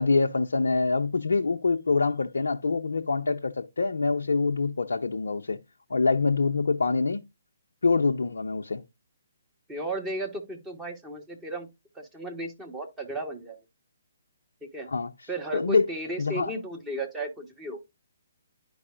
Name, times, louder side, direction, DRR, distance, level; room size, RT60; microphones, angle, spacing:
voice 1, 0.0-5.6 5.9-7.2 7.8-8.8 14.9-15.1 15.5-15.8 16.2-16.5, left 4 dB, 70° left, 0.5 m, -25 dB
voice 2, 9.7-11.7 11.9-13.6 14.6-14.9 15.3-17.8, right 1 dB, 10° right, 1.1 m, -34 dB
11.0 x 4.7 x 2.4 m
figure-of-eight pair, 135°, 0 cm